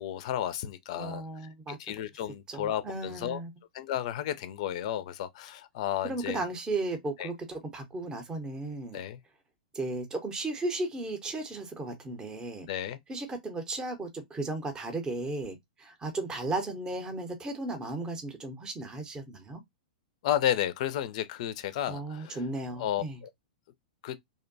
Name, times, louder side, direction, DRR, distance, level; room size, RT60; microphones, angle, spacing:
voice 1, 0.0-3.4 3.7-6.4 7.2-7.3 8.9-9.2 12.7-13.0 20.2-22.4 22.8-23.3 24.0-24.2, left 11 dB, 50° left, 0.4 m, -32 dB
voice 2, 0.9-1.8 2.5-3.5 6.0-9.0 9.7-12.7 13.1-19.6 21.9-23.2, right 2 dB, 15° right, 0.7 m, -35 dB
2.6 x 2.1 x 2.6 m
figure-of-eight pair, 105°, 5 cm